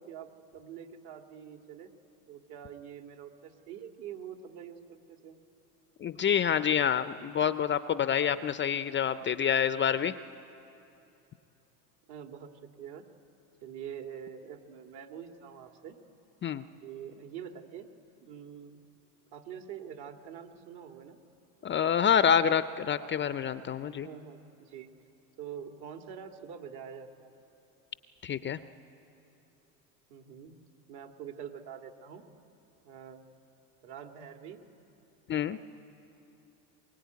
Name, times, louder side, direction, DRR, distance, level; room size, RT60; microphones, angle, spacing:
voice 1, 0.0-1.9 2.3-5.4 12.1-13.1 13.6-16.0 16.8-17.9 18.2-18.8 19.3-21.2 23.8-24.9 25.4-27.4 30.1-30.6 30.9-32.2 32.8-33.2 33.8-34.6, right 8 dB, 55° right, 5 dB, 2.2 m, -45 dB
voice 2, 6.0-10.1 16.4-16.6 21.6-24.1 28.2-28.6 35.3-35.6, left 8 dB, 25° left, 13 dB, 0.5 m, -27 dB
22.0 x 21.5 x 9.4 m, 2.9 s
supercardioid pair, 100°, 46 cm